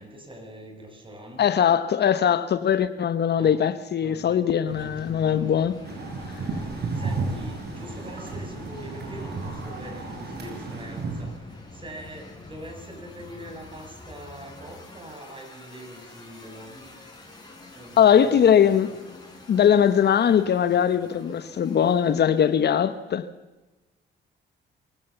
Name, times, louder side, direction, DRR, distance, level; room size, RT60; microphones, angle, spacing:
voice 1, 0.0-1.4 3.3-3.6 4.0-5.4 6.5-17.0 17.7-18.8, equal, 25° right, 6.7 m, -43 dB
voice 2, 1.4-5.8 18.0-18.9 19.5-23.3, left 8 dB, 55° left, 1.2 m, -20 dB
sound 1, 4.7-23.0, left 2 dB, 20° left, 6.2 m, -46 dB
sound 2, 5.8-11.3, right 3 dB, 55° right, 6.4 m, -33 dB
25.0 x 16.0 x 7.1 m
cardioid pair, 90°, 20 cm